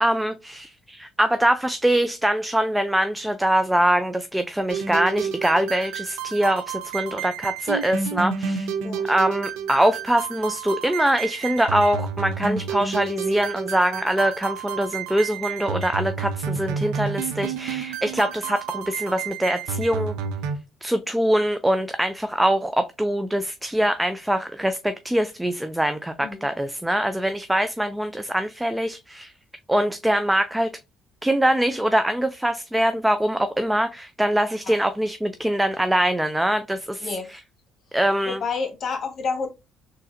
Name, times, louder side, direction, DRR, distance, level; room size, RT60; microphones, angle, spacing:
voice 1, 0.0-8.7 9.1-20.1 20.8-29.3 29.7-30.7 31.2-37.4 37.9-38.4, right 1 dB, 10° right, 0.3 m, -23 dB
sound 1, 4.7-20.6, right 6 dB, 80° right, 0.4 m, -30 dB
voice 2, 38.2-39.5, left 5 dB, 50° left, 1.1 m, -29 dB
3.8 x 2.6 x 2.5 m
supercardioid pair, 70°, 0 cm